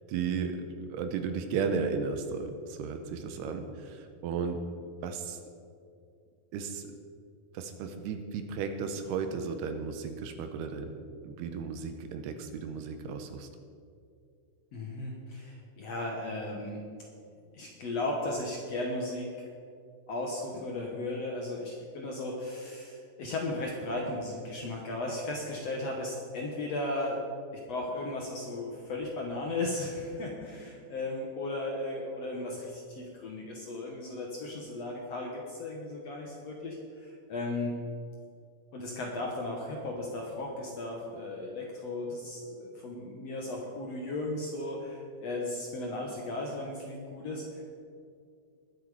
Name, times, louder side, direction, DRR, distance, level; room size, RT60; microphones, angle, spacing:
voice 1, 0.1-0.6 0.9-4.6 5.0-5.4 6.5-6.9 7.5-10.9 11.2-13.5, right 5 dB, 85° right, 6 dB, 2.9 m, -34 dB
voice 2, 14.7-16.8 17.4-19.4 20.1-27.2 27.7-37.7 38.7-47.4, left 2 dB, 70° left, -1 dB, 1.6 m, -36 dB
20.5 x 7.2 x 4.9 m, 2.3 s
omnidirectional pair, 4.6 m